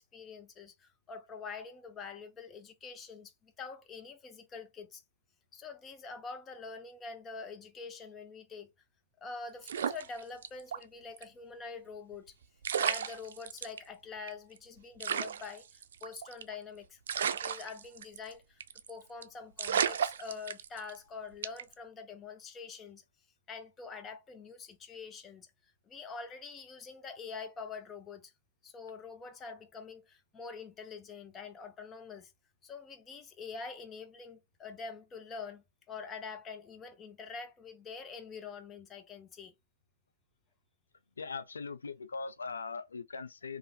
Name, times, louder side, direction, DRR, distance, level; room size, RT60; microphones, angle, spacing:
voice 1, 0.0-5.0 5.5-8.7 9.2-12.3 12.8-18.6 18.9-23.0 23.5-25.5 25.9-28.3 28.6-32.3 32.6-39.5, left 5 dB, 20° left, 0.5 m, -45 dB
sound 1, 9.6-10.8 11.2-11.3 12.3-12.4 12.6-13.8 14.3-14.4 14.6-14.7 15.0-16.6 17.1-18.3 18.6-18.9 19.2-19.3 19.6-21.0 21.4-21.7, right 8 dB, 70° right, 0.4 m, -33 dB
voice 2, 41.2-43.6, left 4 dB, 90° left, 0.4 m, -40 dB
3.1 x 2.4 x 2.3 m
hypercardioid pair, 130°, 0 cm